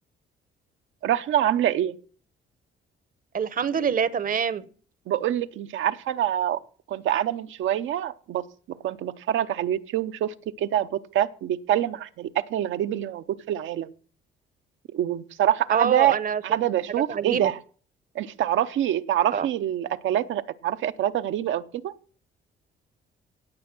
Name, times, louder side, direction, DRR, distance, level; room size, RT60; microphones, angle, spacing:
voice 1, 1.0-1.9 5.1-6.6 6.9-8.4 8.8-13.9 14.9-16.2 16.4-17.6 18.1-22.0, right 11 dB, 75° right, 9 dB, 0.7 m, -25 dB
voice 2, 3.3-4.6 15.7-16.4 17.1-17.5 19.3-19.5, right 7 dB, 45° right, 17 dB, 0.8 m, -25 dB
17.5 x 6.4 x 6.0 m, 0.43 s
cardioid pair, 90°, 20 cm